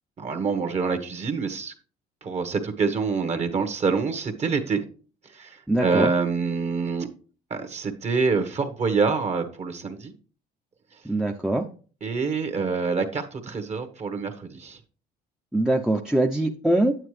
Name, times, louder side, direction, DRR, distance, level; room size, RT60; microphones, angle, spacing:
voice 1, 0.2-1.7 2.2-4.8 5.3-7.1 7.5-10.1 12.0-14.8, right 4 dB, 40° right, 8 dB, 1.2 m, -26 dB
voice 2, 5.7-6.1 11.0-11.7 15.5-16.9, right 1 dB, 5° right, 1 dB, 0.6 m, -23 dB
9.1 x 8.5 x 3.2 m, 0.39 s
cardioid pair, 110°, 17 cm